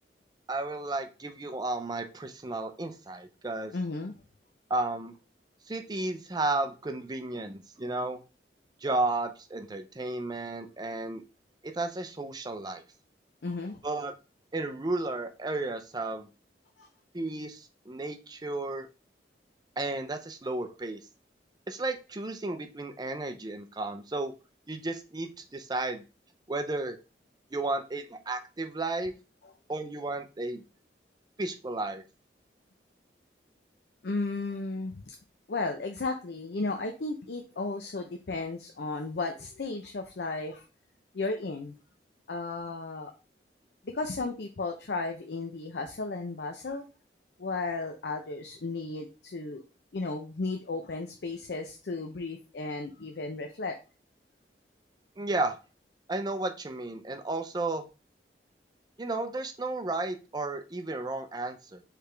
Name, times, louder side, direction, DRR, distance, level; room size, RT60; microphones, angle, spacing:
voice 1, 0.5-3.7 4.7-5.1 5.7-8.2 8.8-11.2 11.8-12.8 13.8-14.1 14.5-16.3 17.1-18.9 19.8-21.0 21.7-24.3 24.7-26.0 26.5-27.0 27.5-29.1 29.7-30.6 31.4-32.0 55.2-55.6 56.1-57.8 59.0-61.8, right 2 dB, 25° right, 7 dB, 0.5 m, -33 dB
voice 2, 3.7-4.1 13.4-13.8 16.8-16.9 34.0-35.1 35.5-40.6 41.1-41.7 42.3-43.1 43.9-46.8 47.4-49.6 49.9-53.8, left 3 dB, 65° left, 4 dB, 0.6 m, -34 dB
4.7 x 3.4 x 3.3 m, 0.32 s
head